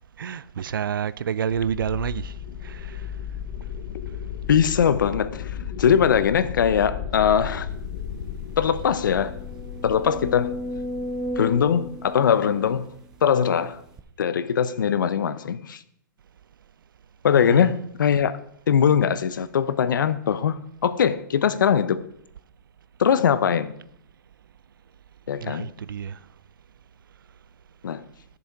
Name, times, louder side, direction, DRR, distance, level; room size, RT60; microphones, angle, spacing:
voice 1, 0.2-3.1 17.4-17.8 25.4-26.2, right 8 dB, 90° right, 0.5 m, -29 dB
sound 1, 1.5-12.1, left 8 dB, 35° left, 0.9 m, -35 dB
voice 2, 4.5-7.7 8.6-9.4 9.8-10.6 11.4-12.9 13.2-13.8 14.2-15.8 17.2-18.4 18.7-22.0 23.0-23.7 25.3-25.7 27.8-28.0, left 8 dB, 70° left, 0.7 m, -21 dB
sound 2, 8.0-8.1 8.4-8.5 9.1-13.3 14.0-14.1, equal, 5° right, 0.3 m, -34 dB
12.5 x 7.0 x 4.7 m
hypercardioid pair, 175°, 11 cm